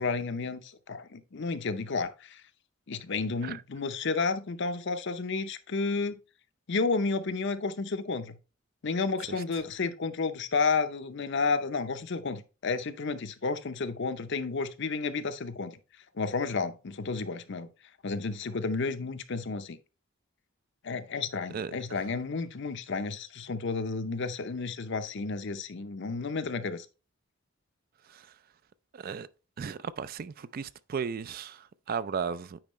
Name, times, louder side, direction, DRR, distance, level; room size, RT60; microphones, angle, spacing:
voice 1, 0.0-2.4 2.9-6.2 6.7-8.4 8.8-15.8 16.2-17.7 18.0-19.8 20.8-26.9, left 4 dB, 60° left, 0.7 m, -31 dB
voice 2, 28.9-29.3 29.6-32.6, right 6 dB, 45° right, 0.4 m, -35 dB
8.8 x 4.6 x 3.1 m
head